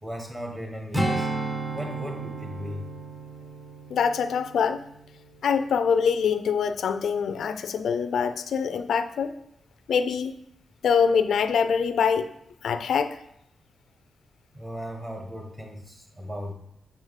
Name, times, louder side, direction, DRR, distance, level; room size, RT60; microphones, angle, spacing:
voice 1, 0.0-1.3 1.7-2.8 14.5-16.5, equal, 20° right, 2 dB, 1.6 m, -36 dB
Strum, 0.9-5.6 6.0-6.2, right 2 dB, 5° right, 0.8 m, -33 dB
voice 2, 3.9-4.8 5.4-9.3 9.9-10.3 10.8-12.3 12.6-13.2, left 6 dB, 70° left, 10 dB, 0.5 m, -24 dB
7.3 x 5.0 x 6.5 m, 0.76 s
wide cardioid pair, 155°, 0 cm